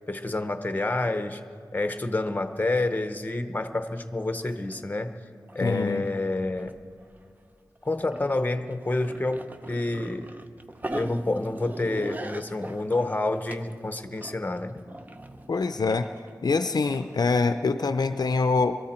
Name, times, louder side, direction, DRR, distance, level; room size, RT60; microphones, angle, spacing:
voice 1, 0.1-1.4 1.7-5.1 5.5-6.7 7.8-9.4 9.7-10.3 10.9-14.8, left 2 dB, 25° left, 8 dB, 0.8 m, -28 dB
sound 1, 4.0-4.1 4.3-5.0 5.5-5.8 6.1-7.2 7.8-17.4, right 1 dB, 25° right, 0.7 m, -41 dB
voice 2, 5.6-6.0 15.5-16.1 16.4-18.8, left 4 dB, 65° left, 9 dB, 0.5 m, -24 dB
23.5 x 14.0 x 4.4 m, 2.4 s
wide cardioid pair, 80°, 7 cm